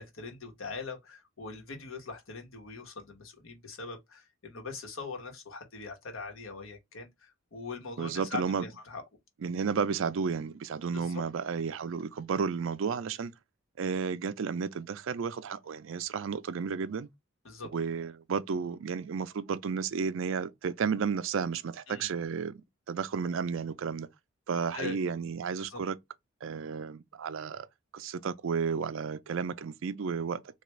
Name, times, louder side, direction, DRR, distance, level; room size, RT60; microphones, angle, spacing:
voice 1, 0.0-9.0 10.9-11.2 17.4-17.7 21.9-22.1 24.7-25.0 25.6-25.8, left 4 dB, 80° left, 1.1 m, -42 dB
voice 2, 8.0-8.7 9.4-13.3 13.8-17.1 17.7-24.1 24.5-26.0 26.4-27.7 27.9-30.4, right 6 dB, 65° right, 0.4 m, -32 dB
3.3 x 2.4 x 3.0 m
head